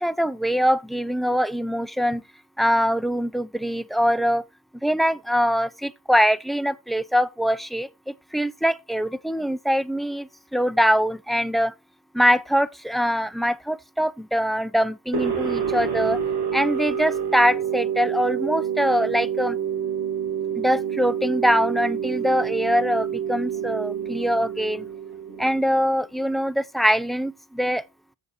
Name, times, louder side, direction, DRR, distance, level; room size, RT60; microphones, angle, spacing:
voice 1, 0.0-2.2 2.6-4.4 4.8-11.7 12.1-16.2 16.5-19.6 20.6-24.9 25.4-27.8, equal, ahead, 0.5 m, -23 dB
sound 1, 15.1-26.0, right 8 dB, 75° right, 2.9 m, -28 dB
8.2 x 6.8 x 4.3 m
cardioid pair, 70°, 40 cm